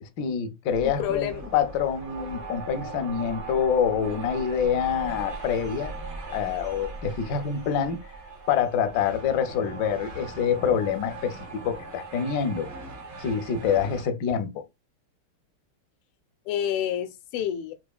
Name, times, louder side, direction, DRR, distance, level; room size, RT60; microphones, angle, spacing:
voice 1, 0.0-5.9 6.3-8.0 8.5-12.7 13.2-14.6, left 7 dB, 70° left, 1.0 m, -26 dB
sound 1, 0.7-14.1, right 3 dB, 55° right, 0.8 m, -39 dB
voice 2, 0.8-1.5 16.4-17.7, left 9 dB, 90° left, 1.5 m, -29 dB
4.6 x 2.8 x 2.3 m
omnidirectional pair, 2.4 m